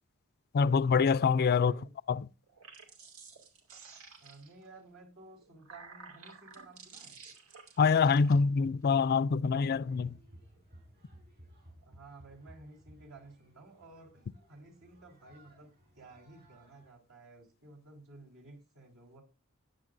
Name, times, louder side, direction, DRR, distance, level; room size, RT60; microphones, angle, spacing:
voice 1, 0.5-1.8 2.1-2.3 7.8-10.2, left 5 dB, 50° left, 0.4 m, -25 dB
voice 2, 1.3-1.9 4.2-7.2 11.8-15.7 15.9-19.2, right 2 dB, 70° right, 4.2 m, -54 dB
sound 1, 2.4-4.7 5.3-8.3, right 5 dB, 90° right, 2.5 m, -52 dB
sound 2, 9.7-16.9, equal, 50° right, 7.0 m, -59 dB
14.5 x 9.7 x 2.6 m
head